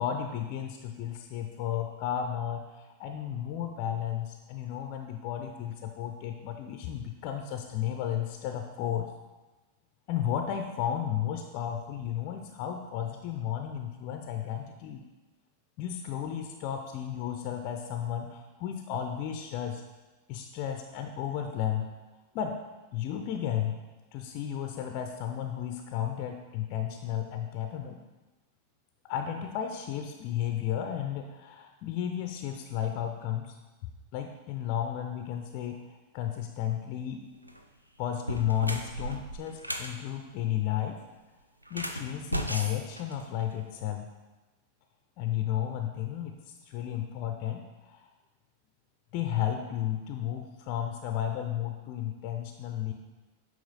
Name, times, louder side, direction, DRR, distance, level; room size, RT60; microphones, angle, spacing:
voice 1, 0.0-9.1 10.1-15.0 15.8-19.8 20.3-21.9 22.3-22.6 22.9-23.8 24.1-28.0 29.1-33.5 34.1-37.2 38.0-41.0 41.7-44.1 45.2-46.3 46.7-48.1 49.1-52.9, left 10 dB, 45° left, 4 dB, 0.5 m, -33 dB
sound 1, 37.3-37.6 38.1-40.0 41.6-43.7, right 1 dB, 85° right, 0.4 m, -36 dB
8.6 x 3.0 x 4.0 m, 1.2 s
figure-of-eight pair, 90°, 0 cm